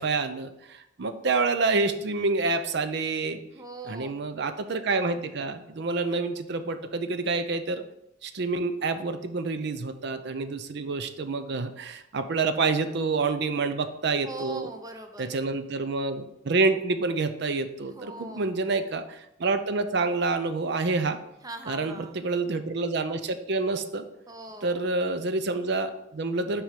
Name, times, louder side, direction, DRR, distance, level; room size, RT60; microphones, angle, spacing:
voice 1, 0.0-3.4 3.9-7.8 8.2-14.7 15.2-21.2 21.7-24.0 24.6-26.6, right 3 dB, 55° right, 9 dB, 0.6 m, -28 dB
voice 2, 3.5-4.3 14.2-15.4 17.9-18.6 21.4-22.3 24.3-24.9, right 2 dB, 20° right, 5 dB, 0.7 m, -41 dB
6.1 x 4.8 x 5.8 m, 0.85 s
head